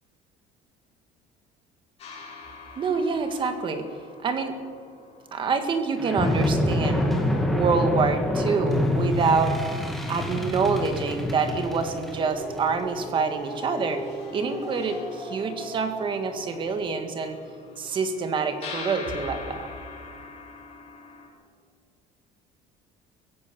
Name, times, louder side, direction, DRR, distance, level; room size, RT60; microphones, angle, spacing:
sound 1, 2.0-6.9 8.4-8.5 8.8-21.3, left 4 dB, 40° left, 6.7 m, -44 dB
voice 1, 2.8-3.9 4.2-4.6 5.3-7.1 7.5-9.6 10.1-14.0 14.3-17.4 17.8-19.7, right 4 dB, 30° right, 7 dB, 2.0 m, -26 dB
sound 2, 6.0-16.6, left 1 dB, ahead, 2.4 m, -28 dB
24.0 x 16.5 x 7.1 m, 2.2 s
cardioid pair, 175°, 16 cm